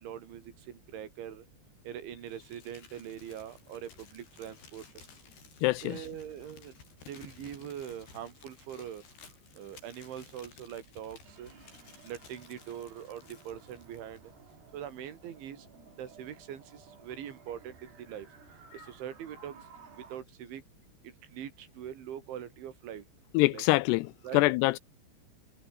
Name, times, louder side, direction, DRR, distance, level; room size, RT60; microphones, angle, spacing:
voice 1, 0.0-1.4 1.9-4.8 5.8-6.7 7.1-9.0 9.6-11.5 12.0-14.2 14.7-15.6 16.0-16.6 17.0-17.8 18.1-18.3 18.7-19.5 20.1-20.6 21.3-23.0 23.5-23.6 24.2-24.4, right 10 dB, 75° right, 5.4 m, -42 dB
Crumpling crinkling, 2.2-14.3, left 6 dB, 60° left, 7.3 m, -56 dB
voice 2, 5.6-6.1 23.3-24.8, left 21 dB, 90° left, 2.3 m, -25 dB
sound 1, 11.2-20.2, right 6 dB, 60° right, 6.8 m, -56 dB
omnidirectional pair, 5.4 m